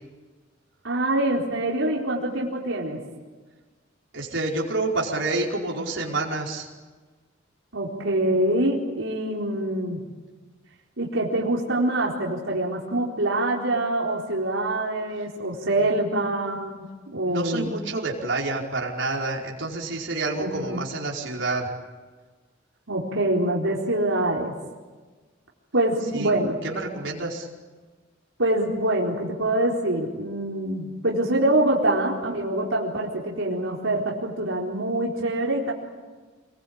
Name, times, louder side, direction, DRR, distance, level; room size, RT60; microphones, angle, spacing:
voice 1, 0.8-3.0 7.7-10.0 11.0-17.8 20.4-20.8 22.9-24.5 25.7-26.6 28.4-35.7, right 1 dB, 90° right, -3 dB, 4.2 m, -25 dB
voice 2, 4.1-6.7 15.8-15.9 17.2-21.7 26.1-26.3 26.6-27.5, right 2 dB, 70° right, -2 dB, 4.9 m, -28 dB
28.0 x 22.0 x 8.7 m, 1.4 s
head